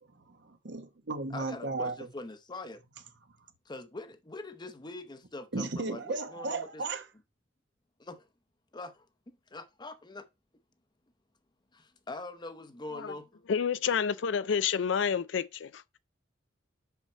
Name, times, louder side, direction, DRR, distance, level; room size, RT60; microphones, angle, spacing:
voice 1, 0.3-1.9 5.5-7.1, right 3 dB, 65° right, 1.1 m, -35 dB
voice 2, 1.3-2.8 3.7-6.8 8.0-8.3 8.7-10.3 11.7-13.5, left 2 dB, 25° left, 0.8 m, -43 dB
voice 3, 13.5-15.8, left 7 dB, 70° left, 0.4 m, -29 dB
5.8 x 5.6 x 4.4 m
head